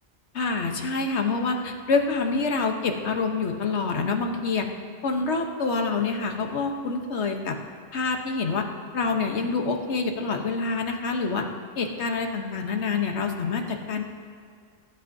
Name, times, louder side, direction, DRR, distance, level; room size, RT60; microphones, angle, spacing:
voice 1, 0.3-4.7 5.0-7.6 7.9-8.6 8.9-11.5 11.7-14.0, left 4 dB, 70° left, 3 dB, 1.3 m, -26 dB
21.0 x 11.0 x 2.7 m, 2.2 s
omnidirectional pair, 1.2 m